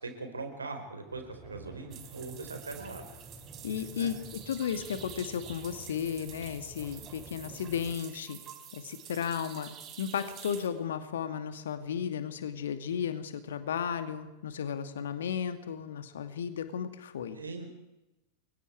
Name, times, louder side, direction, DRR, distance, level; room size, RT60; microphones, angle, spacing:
voice 1, 0.0-3.0 3.9-4.1 17.4-17.8, right 3 dB, 75° right, 5 dB, 4.9 m, -41 dB
sound 1, 1.1-8.0, right 2 dB, 10° right, 6.3 m, -50 dB
sound 2, 1.9-10.7, right 9 dB, 35° right, 4.2 m, -49 dB
voice 2, 3.6-4.2 4.5-8.4 8.7-9.7 10.0-17.4, left 8 dB, 60° left, 9 dB, 2.4 m, -34 dB
29.5 x 23.5 x 4.8 m, 0.98 s
figure-of-eight pair, 90°, 0 cm